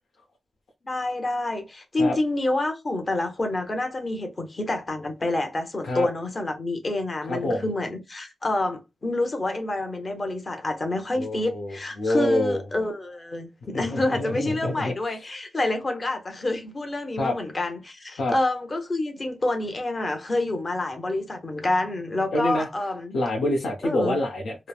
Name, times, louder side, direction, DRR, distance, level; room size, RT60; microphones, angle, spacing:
voice 1, 0.8-23.2 23.8-24.2, left 2 dB, 35° left, 0.8 m, -28 dB
voice 2, 7.3-7.6 11.2-12.6 13.7-14.9 17.2-17.4 18.2-18.3 22.3-22.7 23.1-24.7, left 1 dB, 85° left, 0.7 m, -26 dB
3.0 x 2.0 x 2.3 m
wide cardioid pair, 90°, 0 cm